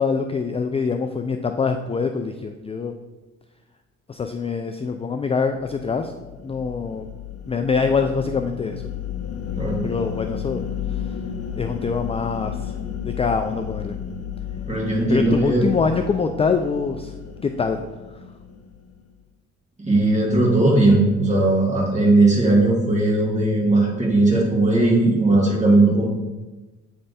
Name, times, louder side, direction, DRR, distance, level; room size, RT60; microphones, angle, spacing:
voice 1, 0.0-2.9 4.1-6.1 6.4-7.1 7.5-8.8 9.8-10.6 10.9-11.2 11.6-12.7 13.0-14.0 15.1-17.1 17.4-17.8, left 5 dB, 20° left, 6 dB, 0.3 m, -24 dB
sound 1, 5.6-19.1, left 8 dB, 55° left, 0.7 m, -33 dB
voice 2, 14.7-15.6 19.8-26.1, right 2 dB, 25° right, -3 dB, 2.2 m, -18 dB
8.5 x 3.4 x 4.2 m, 1.2 s
cardioid pair, 90°, 30 cm